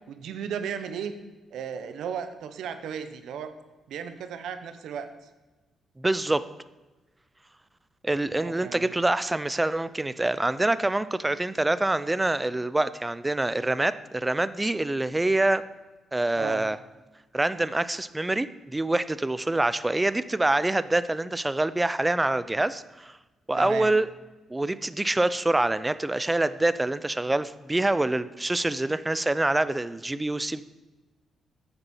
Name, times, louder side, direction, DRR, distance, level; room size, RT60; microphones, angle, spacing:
voice 1, 0.1-1.1 1.5-3.5 3.9-5.1 8.3-8.9 16.4-16.7 23.6-23.9, right 7 dB, 80° right, 9 dB, 0.9 m, -35 dB
voice 2, 6.0-6.4 8.0-15.6 16.1-16.8 17.3-23.2 23.5-24.1 24.5-30.6, right 2 dB, 15° right, 15 dB, 0.5 m, -25 dB
9.7 x 7.0 x 5.5 m, 1.2 s
cardioid pair, 85°, 0 cm